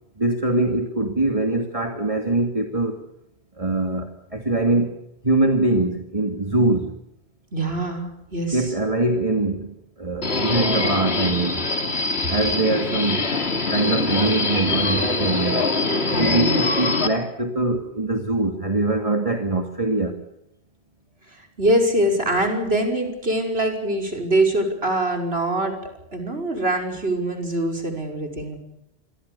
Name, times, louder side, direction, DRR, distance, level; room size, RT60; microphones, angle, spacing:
voice 1, 0.2-3.0 3.6-5.0 5.2-6.9 8.5-9.7 10.0-11.7 12.3-13.3 13.7-15.6 16.2-20.2, right 2 dB, 35° right, 4 dB, 2.5 m, -23 dB
voice 2, 7.5-8.7 16.1-16.6 21.3-25.8 26.1-28.6, right 1 dB, 75° right, 4 dB, 6.0 m, -23 dB
Subway metro underground, 10.2-17.1, left 3 dB, 85° left, 2.9 m, -23 dB
27.5 x 23.0 x 7.0 m, 0.84 s
omnidirectional pair, 1.1 m